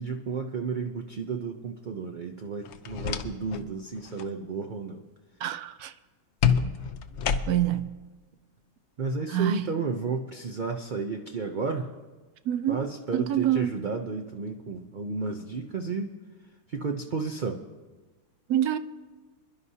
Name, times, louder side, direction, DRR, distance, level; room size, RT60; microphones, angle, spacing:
voice 1, 0.0-5.0 9.0-11.9 12.7-16.2 16.7-17.6, right 4 dB, 60° right, 0.5 m, -32 dB
sound 1, 2.6-3.7 4.0-4.3 6.4-7.8, left 7 dB, 60° left, 0.7 m, -28 dB
voice 2, 5.4-5.9 7.5-7.9 9.3-9.6 12.5-12.8 13.1-13.7 18.5-18.8, right 11 dB, 75° right, 1.0 m, -26 dB
25.5 x 11.0 x 2.8 m
omnidirectional pair, 1.7 m